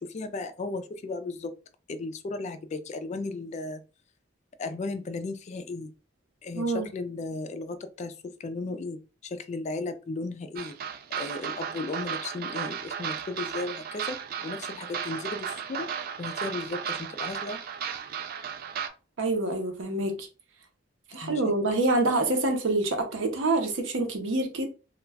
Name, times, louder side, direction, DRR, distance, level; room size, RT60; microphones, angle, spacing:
voice 1, 0.0-1.5 1.9-3.8 4.6-5.9 6.4-10.8 11.2-15.9 16.2-17.6 21.2-21.8, left 3 dB, 40° left, 0.3 m, -35 dB
voice 2, 6.5-6.9 19.2-20.3 21.1-24.7, right 2 dB, 80° right, 0.7 m, -26 dB
sound 1, 10.6-18.9, right 7 dB, 50° right, 0.3 m, -35 dB
2.3 x 2.1 x 3.3 m
head